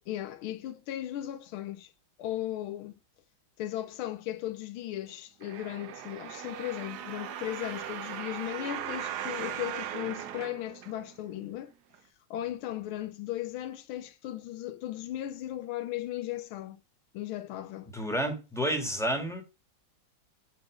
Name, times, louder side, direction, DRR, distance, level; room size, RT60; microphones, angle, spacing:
voice 1, 0.1-1.9 2.2-2.9 3.6-11.7 12.3-16.8 17.1-17.9, left 13 dB, 90° left, 1.6 m, -36 dB
sound 1, 5.4-11.3 11.9-12.0, right 10 dB, 65° right, 1.1 m, -39 dB
voice 2, 17.9-19.4, equal, ahead, 1.5 m, -30 dB
8.6 x 4.0 x 4.9 m
omnidirectional pair, 2.2 m